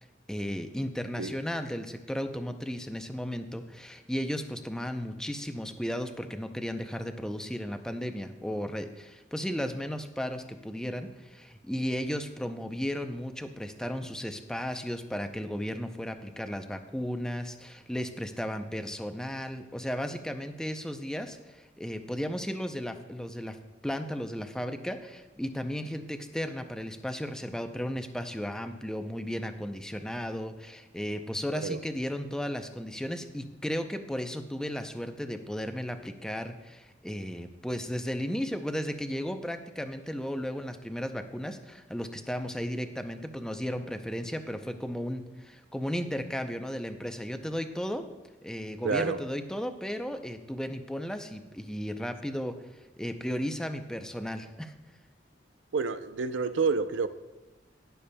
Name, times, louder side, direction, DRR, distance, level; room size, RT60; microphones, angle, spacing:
voice 1, 0.3-23.6 23.8-48.0 48.4-54.7, equal, 5° left, 7 dB, 0.5 m, -35 dB
voice 2, 48.8-49.2 55.7-57.1, right 4 dB, 80° right, 11 dB, 0.5 m, -28 dB
19.5 x 6.9 x 2.2 m, 1.1 s
head